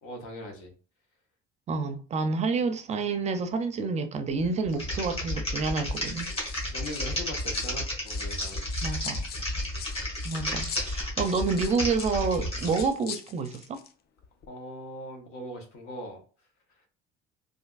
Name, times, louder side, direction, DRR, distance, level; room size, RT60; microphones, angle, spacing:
voice 1, 0.0-0.7 6.6-8.6 14.5-16.2, equal, 85° left, 1.0 m, -40 dB
voice 2, 1.7-6.3 8.8-9.2 10.2-13.8, right 4 dB, 30° right, 0.4 m, -29 dB
sound 1, 4.3-4.8 5.7-7.8 8.0-13.9 14.2-14.5, left 7 dB, 50° left, 0.4 m, -43 dB
Typing, 4.7-12.9, left 1 dB, 30° left, 1.5 m, -32 dB
3.3 x 2.5 x 2.4 m
cardioid pair, 125°, 21 cm